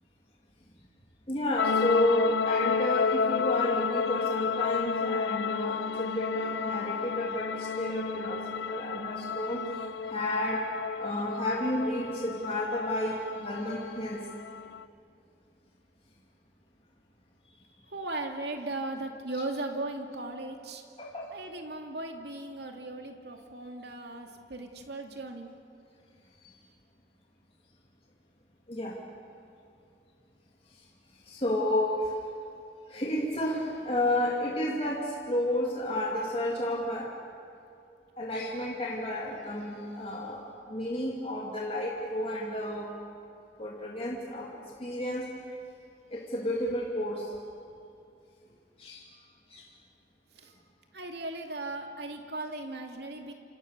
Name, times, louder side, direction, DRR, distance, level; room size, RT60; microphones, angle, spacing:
voice 1, 1.3-10.6 11.0-14.2 21.0-21.3 28.7-29.0 31.3-32.1 32.9-37.1 38.2-40.4 40.7-42.9 43.6-45.3 46.1-47.3 48.8-49.0 49.5-49.6, left 1 dB, 35° left, -3 dB, 2.8 m, -31 dB
sound 1, 1.6-14.8, left 5 dB, 85° left, 0.6 m, -31 dB
voice 2, 17.9-20.8 21.3-25.5 50.3-50.5 50.9-53.3, right 2 dB, 70° right, 3 dB, 2.5 m, -37 dB
28.0 x 27.5 x 6.8 m, 2.5 s
head